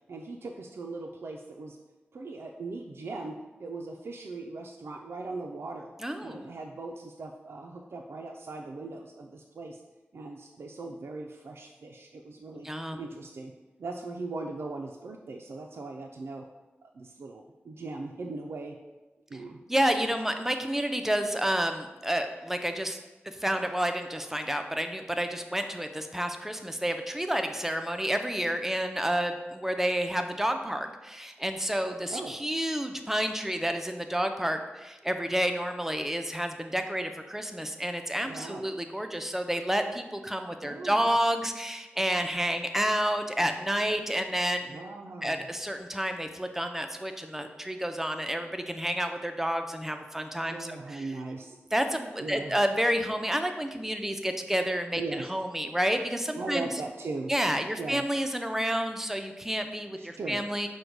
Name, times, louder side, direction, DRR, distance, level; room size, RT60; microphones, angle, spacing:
voice 1, 0.1-1.8 2.1-5.9 6.2-9.8 10.1-12.7 13.0-13.5 13.8-16.4 16.9-18.8 19.3-19.6 32.1-32.4 38.2-38.7 40.6-41.0 44.6-45.5 50.5-51.6 52.2-52.6 55.0-55.3 56.3-57.3 57.8-58.1 60.0-60.5, right 3 dB, 75° right, 1 dB, 0.3 m, -39 dB
voice 2, 6.0-6.5 12.6-13.0 19.7-23.0 23.2-44.8 45.2-51.1 51.7-56.7 57.3-60.7, equal, 10° right, 6 dB, 0.4 m, -30 dB
5.0 x 2.1 x 4.5 m, 1.1 s
cardioid pair, 55°, 4 cm